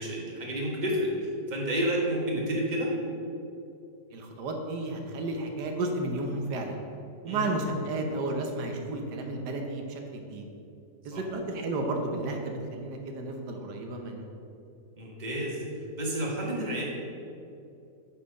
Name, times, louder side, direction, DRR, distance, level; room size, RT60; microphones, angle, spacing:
voice 1, 0.0-2.9 7.2-7.5 11.1-11.2 15.0-15.6 15.9-16.8, equal, 30° right, -3 dB, 1.5 m, -30 dB
voice 2, 4.1-6.8 7.2-10.5 11.0-14.2, right 2 dB, 90° right, 3 dB, 1.5 m, -32 dB
8.6 x 4.4 x 6.3 m, 2.6 s
omnidirectional pair, 1.7 m